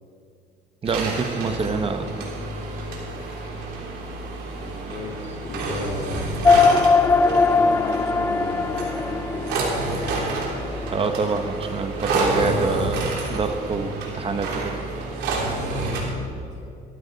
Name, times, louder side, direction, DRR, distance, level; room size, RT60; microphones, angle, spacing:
voice 1, 0.8-2.1 10.9-14.7, right 4 dB, 35° right, 7 dB, 1.0 m, -26 dB
sound 1, 0.8-16.0, right 2 dB, 85° right, 3.2 m, -29 dB
voice 2, 4.5-6.3 7.2-9.5, left 3 dB, 40° left, 1 dB, 2.4 m, -35 dB
sound 2, 6.4-11.2, left 4 dB, 15° left, 0.4 m, -20 dB
18.5 x 14.0 x 4.1 m, 2.6 s
cardioid pair, 110°, 17 cm